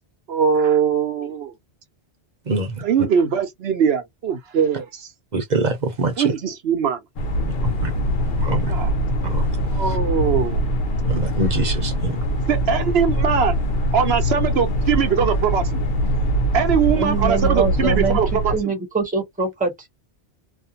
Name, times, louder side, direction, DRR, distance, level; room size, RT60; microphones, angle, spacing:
voice 1, 0.3-1.5 2.8-5.1 6.2-7.0 8.7-8.9 9.7-10.6 12.5-13.6 13.9-15.8 16.5-18.5, right 7 dB, 70° right, 0.9 m, -21 dB
voice 2, 2.5-2.8 5.3-6.3 7.8-7.9 8.4-8.7 9.3-9.5 11.1-12.2, right 3 dB, 45° right, 0.8 m, -24 dB
sound 1, 7.2-18.6, equal, 65° left, 0.9 m, -22 dB
voice 3, 17.0-19.9, right 4 dB, 10° right, 0.8 m, -24 dB
2.5 x 2.2 x 2.7 m
omnidirectional pair, 1.1 m